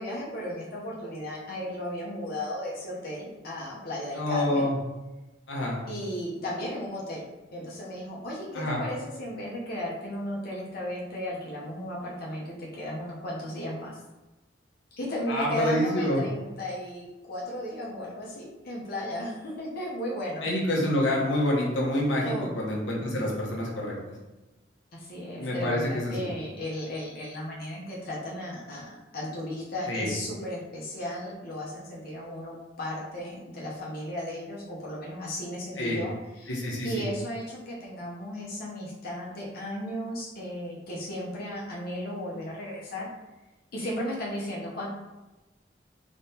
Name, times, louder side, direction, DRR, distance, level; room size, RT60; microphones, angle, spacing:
voice 1, 0.0-4.7 5.9-14.0 14.9-20.5 22.2-22.5 24.9-43.1 43.7-44.9, equal, 55° left, -5 dB, 0.8 m, -35 dB
voice 2, 4.1-4.8 5.5-5.8 8.5-8.8 15.3-16.2 20.4-23.9 25.3-26.3 29.9-30.1 35.8-36.0 36.5-37.0, left 1 dB, 90° left, -3 dB, 0.9 m, -27 dB
3.5 x 3.0 x 2.8 m, 1.1 s
head